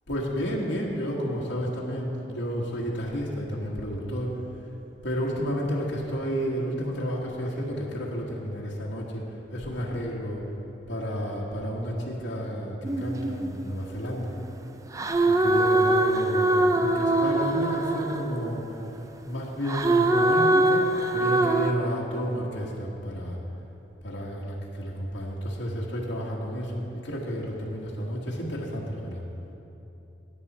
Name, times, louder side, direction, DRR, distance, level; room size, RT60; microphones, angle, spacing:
voice 1, 0.1-4.3 5.0-9.2 9.5-10.4 10.9-14.3 15.2-18.6 19.2-23.4 24.0-29.2, equal, 75° left, -5 dB, 1.7 m, -31 dB
sound 1, 12.8-14.4 14.9-18.8 19.6-21.7, right 2 dB, 15° right, 0.4 m, -23 dB
16.5 x 9.0 x 4.3 m, 3.0 s
head